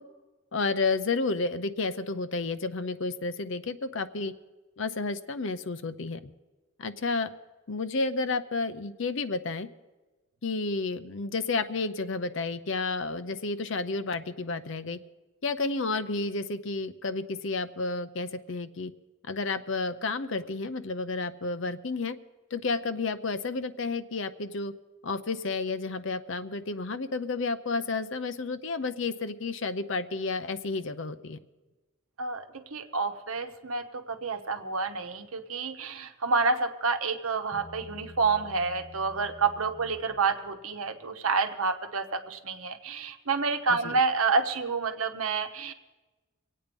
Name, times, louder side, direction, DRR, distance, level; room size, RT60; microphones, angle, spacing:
voice 1, 0.5-4.3 4.8-6.3 6.8-7.3 7.7-9.7 10.4-15.0 15.4-18.9 19.2-22.2 22.5-24.7 25.0-31.4 43.7-44.0, left 3 dB, 65° left, 11 dB, 0.7 m, -31 dB
voice 2, 32.2-45.7, right 4 dB, 85° right, 7 dB, 1.0 m, -29 dB
Bass guitar, 37.5-40.9, left 2 dB, 15° left, 2.5 m, -50 dB
23.5 x 8.6 x 5.3 m, 1.2 s
head